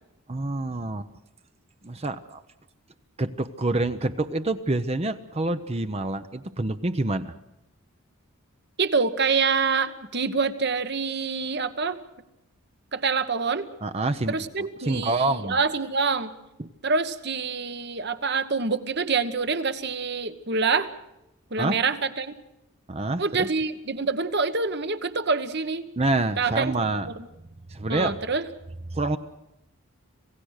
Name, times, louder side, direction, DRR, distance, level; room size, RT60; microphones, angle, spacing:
voice 1, 0.3-1.1 1.8-2.4 3.2-7.3 13.8-14.3 14.8-15.6 16.6-16.7 21.6-21.8 22.9-23.5 26.0-27.1 27.7-28.2 28.9-29.2, right 2 dB, 30° right, 10 dB, 0.7 m, -27 dB
voice 2, 8.8-12.0 12.9-13.7 14.3-16.3 16.8-20.9 21.5-22.3 23.2-25.9 26.4-27.1 27.9-28.5, right 4 dB, 50° right, 11 dB, 1.3 m, -26 dB
27.0 x 17.0 x 6.5 m, 0.89 s
head